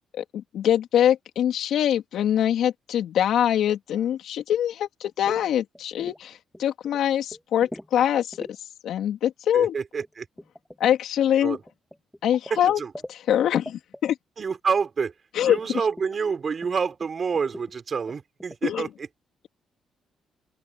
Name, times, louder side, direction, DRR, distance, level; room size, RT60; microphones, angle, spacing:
voice 1, 0.1-8.5 8.8-9.7 10.8-11.6 12.2-12.8 13.1-14.2 15.3-15.8 18.6-18.9, left 10 dB, 75° left, 3.6 m, -24 dB
sound 1, 5.0-5.4 5.7-6.3 6.5-7.0 7.3-7.9 8.3-8.5 10.0-13.4 13.7-14.0 15.6-15.7 15.9-16.2 16.6-16.7 17.0-17.1 17.3-17.6 18.1-18.6, left 1 dB, 5° left, 3.8 m, -40 dB
voice 2, 9.5-10.2 11.4-11.6 12.5-12.9 14.4-15.1 15.4-19.1, right 5 dB, 45° right, 4.8 m, -28 dB
open air
cardioid pair, 90°, 0 cm